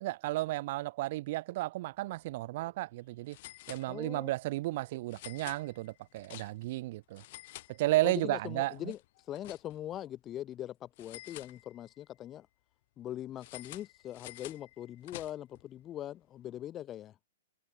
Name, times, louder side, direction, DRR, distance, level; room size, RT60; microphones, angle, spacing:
voice 1, 0.0-3.4 3.7-7.2 7.7-8.9, right 18 dB, 40° right, 0.6 m, -33 dB
sound 1, 2.1-2.3 2.6-2.7 3.3-4.3 5.1-6.8 7.1-8.3 8.6-10.0 11.0-12.1 13.4-15.6, left 18 dB, 40° left, 7.3 m, -50 dB
voice 2, 3.7-4.3 8.0-9.0 9.3-12.5 13.0-17.1, left 12 dB, 20° left, 0.7 m, -41 dB
hypercardioid pair, 160°, 0 cm